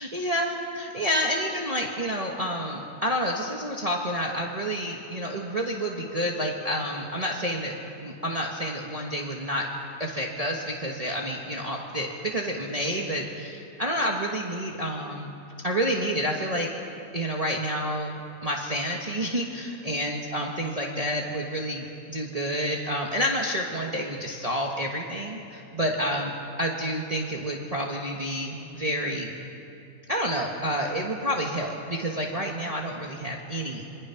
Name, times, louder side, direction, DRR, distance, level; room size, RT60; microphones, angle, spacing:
voice 1, 0.0-7.7 8.0-9.7 10.0-15.3 15.6-16.7 17.1-26.3 26.6-29.3 30.1-33.9, equal, 25° right, -1 dB, 1.5 m, -29 dB
27.0 x 21.0 x 5.9 m, 2.7 s
omnidirectional pair, 1.7 m